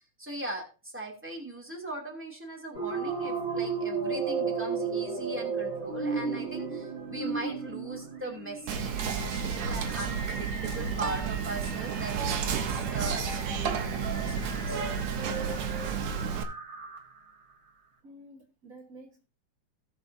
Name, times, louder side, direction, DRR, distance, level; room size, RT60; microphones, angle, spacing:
voice 1, 0.2-14.8, right 1 dB, 5° right, 2.1 m, -40 dB
sound 1, 2.7-17.3, right 4 dB, 25° right, 3.2 m, -35 dB
Whispering, 8.7-16.4, right 6 dB, 65° right, 2.1 m, -31 dB
voice 2, 18.0-19.2, right 1 dB, 85° right, 0.7 m, -50 dB
17.5 x 6.3 x 2.7 m
omnidirectional pair, 3.6 m